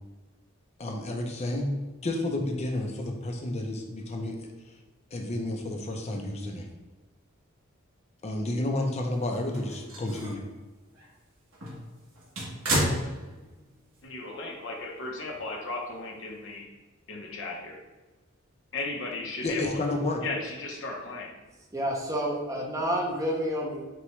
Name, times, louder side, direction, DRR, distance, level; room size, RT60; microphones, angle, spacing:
voice 1, 0.8-1.7 2.0-4.4 5.1-6.7 8.2-10.4 19.4-20.2, left 1 dB, 30° left, 2 dB, 0.6 m, -31 dB
sound 1, 9.3-10.5 10.9-11.1 11.5-13.7 14.0-14.1 15.3-15.4, right 1 dB, 70° right, 1.3 m, -31 dB
voice 2, 14.0-16.7 17.1-17.8 18.7-19.7 20.2-21.3, left 3 dB, 65° left, 0 dB, 0.8 m, -35 dB
voice 3, 21.7-23.9, equal, 15° right, -1 dB, 0.6 m, -29 dB
6.0 x 2.3 x 3.1 m, 1.2 s
head